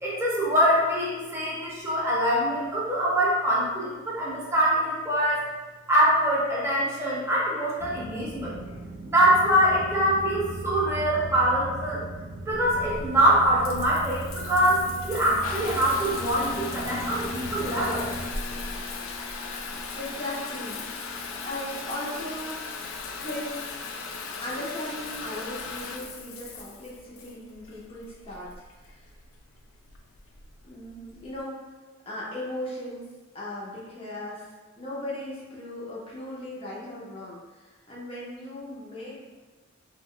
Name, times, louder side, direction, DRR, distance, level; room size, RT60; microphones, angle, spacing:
voice 1, 0.0-5.4 5.9-8.6 9.1-12.0 12.5-18.1, equal, 15° right, -6 dB, 0.6 m, -24 dB
sound 1, 7.8-18.3, right 3 dB, 60° right, 0.4 m, -38 dB
Water tap faucet / Bathtub (filling or washing) / Trickle dribble, 12.5-31.4, left 4 dB, 85° left, 0.3 m, -37 dB
voice 2, 19.9-20.8 21.4-22.7 23.2-23.7 24.4-28.5 28.9-29.1 30.6-31.7 32.1-33.1 33.3-34.5 34.8-39.2, left 1 dB, 30° left, -6 dB, 0.5 m, -37 dB
2.3 x 2.1 x 3.6 m, 1.2 s
head